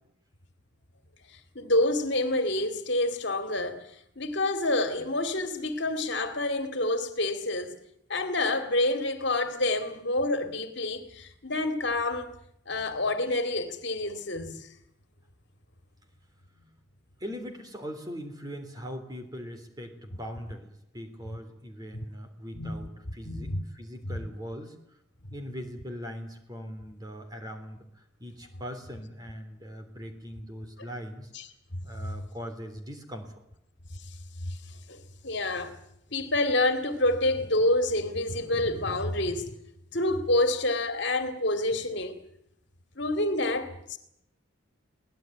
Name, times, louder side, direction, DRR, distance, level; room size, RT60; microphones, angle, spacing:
voice 1, 1.3-7.7 8.1-12.3 12.7-14.7 21.9-22.0 22.5-22.8 23.2-23.6 24.1-24.2 31.3-31.5 31.7-31.8 34.1-34.2 34.5-35.7 36.1-39.6 39.9-42.2 43.0-44.0, left 2 dB, 55° left, 2.3 m, -28 dB
voice 2, 17.2-24.7 25.3-31.3 31.8-33.3, equal, 20° right, 3.4 m, -40 dB
23.5 x 18.0 x 9.3 m
head